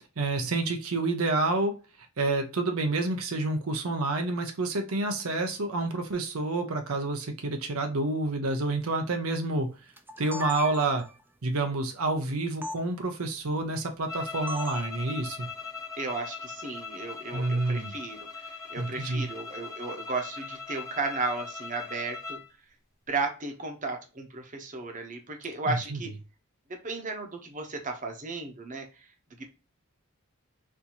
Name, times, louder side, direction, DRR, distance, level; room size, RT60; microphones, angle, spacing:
voice 1, 0.2-1.7 2.2-9.7 10.2-11.0 11.4-15.5 17.3-17.9 18.8-19.3 25.7-26.0, right 2 dB, 85° right, 5 dB, 0.7 m, -28 dB
sound 1, 10.0-11.2 12.6-12.8 14.5-14.9, equal, 10° right, 0.5 m, -37 dB
sound 2, 14.1-22.5, left 4 dB, 15° left, 0.8 m, -40 dB
voice 2, 16.0-22.4 23.1-26.1 26.8-28.8, right 3 dB, 40° right, 4 dB, 0.9 m, -34 dB
4.3 x 2.7 x 2.9 m, 0.32 s
head